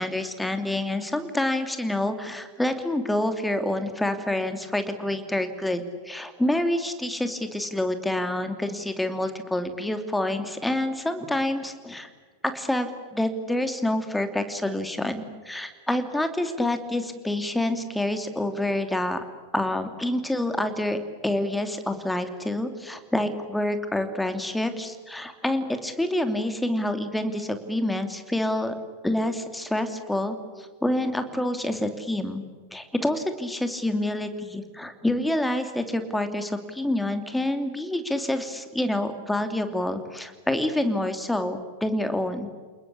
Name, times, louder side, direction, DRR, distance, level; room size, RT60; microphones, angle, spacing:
voice 1, 0.0-12.1 12.4-19.2 19.5-28.7 29.0-32.4 32.7-42.5, left 1 dB, 5° left, 8 dB, 2.8 m, -27 dB
29.5 x 21.0 x 8.6 m, 1.5 s
figure-of-eight pair, 90°, 0 cm